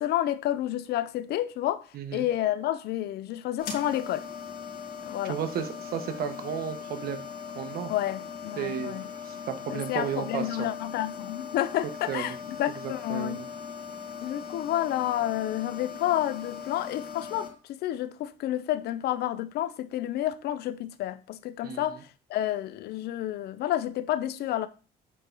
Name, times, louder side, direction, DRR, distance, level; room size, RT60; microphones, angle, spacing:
voice 1, 0.0-1.9 2.1-4.3 5.1-5.4 7.9-9.1 9.7-13.4 14.2-24.7, left 13 dB, 70° left, 0.7 m, -30 dB
voice 2, 1.9-2.3 5.2-7.2 7.5-7.9 8.6-9.0 9.2-10.7 12.1-12.3 12.8-13.5 21.6-21.8, right 8 dB, 65° right, 1.3 m, -33 dB
sound 1, 3.6-17.5, left 7 dB, 55° left, 2.6 m, -40 dB
7.8 x 4.7 x 4.0 m
cardioid pair, 110°, 17 cm